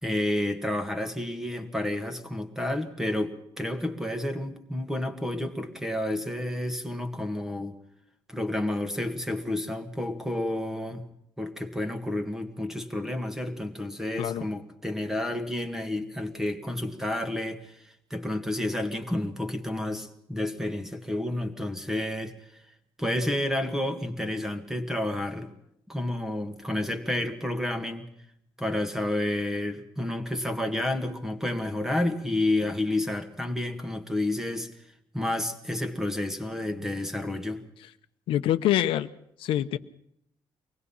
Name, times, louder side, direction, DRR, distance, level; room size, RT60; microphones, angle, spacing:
voice 1, 0.0-7.7 8.3-11.0 11.4-22.6 23.0-25.5 25.9-28.1 28.6-37.6, left 1 dB, 5° right, 8 dB, 1.8 m, -30 dB
voice 2, 38.3-39.1 39.4-39.8, left 12 dB, 80° left, 10 dB, 1.0 m, -25 dB
24.0 x 19.5 x 5.7 m, 0.74 s
cardioid pair, 180°, 9 cm